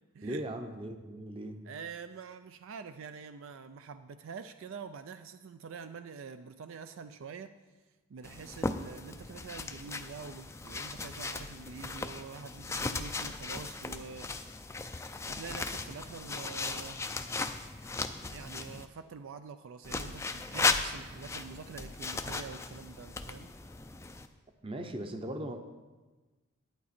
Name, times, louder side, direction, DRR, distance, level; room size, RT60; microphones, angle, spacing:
voice 1, 0.2-1.6 24.6-25.6, right 1 dB, 25° right, 6 dB, 0.7 m, -38 dB
voice 2, 1.6-7.5 8.1-14.5 15.3-17.3 18.3-23.5, right 5 dB, 65° right, 10 dB, 0.4 m, -46 dB
sound 1, 8.2-18.9 19.8-24.3, left 3 dB, 10° left, 0.4 m, -37 dB
11.0 x 9.6 x 4.3 m, 1.3 s
head